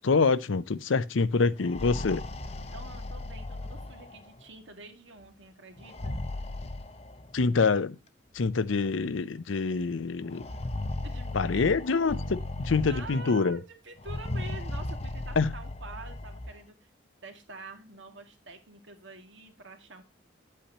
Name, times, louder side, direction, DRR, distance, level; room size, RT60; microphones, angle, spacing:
voice 1, 0.0-2.2 7.3-8.0 8.3-10.5 11.3-13.6 15.4-15.5, left 4 dB, 85° left, 0.6 m, -26 dB
sound 1, 1.5-4.4 5.8-7.5 8.5-8.6 8.9-9.0 10.3-13.4 14.0-16.6, left 2 dB, 35° left, 0.7 m, -36 dB
voice 2, 2.7-6.2 11.0-11.7 12.8-16.9 17.2-20.0, right 3 dB, 75° right, 2.1 m, -47 dB
10.0 x 8.4 x 2.8 m
head